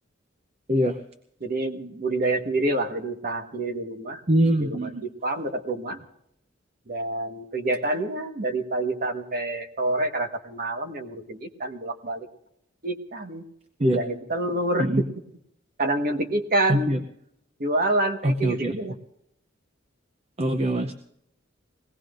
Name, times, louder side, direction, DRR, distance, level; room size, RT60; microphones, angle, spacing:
voice 1, 1.4-4.2 4.6-6.0 6.9-12.3 12.8-13.4 13.8-15.0 15.8-16.9 17.6-18.9, right 2 dB, 50° right, 5 dB, 1.5 m, -27 dB
voice 2, 4.3-5.0 13.8-14.0 14.8-15.0 16.7-17.0 18.2-18.8 20.4-20.9, right 1 dB, 30° right, 6 dB, 0.7 m, -23 dB
22.5 x 18.0 x 2.6 m, 0.76 s
head